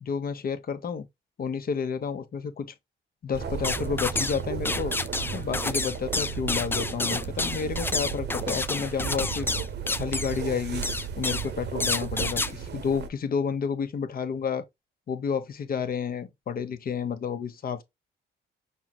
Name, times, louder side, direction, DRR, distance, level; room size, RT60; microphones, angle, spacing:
voice 1, 0.0-1.1 1.4-2.7 3.2-4.9 5.3-9.5 10.0-10.9 11.2-14.6 15.1-17.8, left 6 dB, 45° left, 1.0 m, -30 dB
sound 1, 3.3-13.1, right 7 dB, 60° right, 1.0 m, -34 dB
sound 2, 3.6-4.4 4.7-10.4 10.8-11.5 11.8-12.5, left 3 dB, 10° left, 0.4 m, -29 dB
5.6 x 3.1 x 2.3 m
cardioid pair, 90°, 20 cm